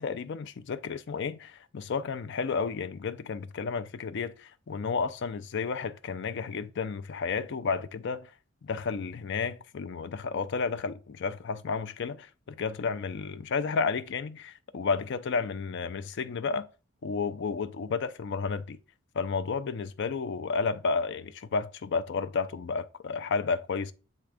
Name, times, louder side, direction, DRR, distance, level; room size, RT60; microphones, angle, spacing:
voice 1, 0.0-8.3 8.6-16.7 17.0-18.8 19.1-23.9, left 5 dB, 55° left, 0.4 m, -32 dB
7.7 x 3.6 x 3.4 m
head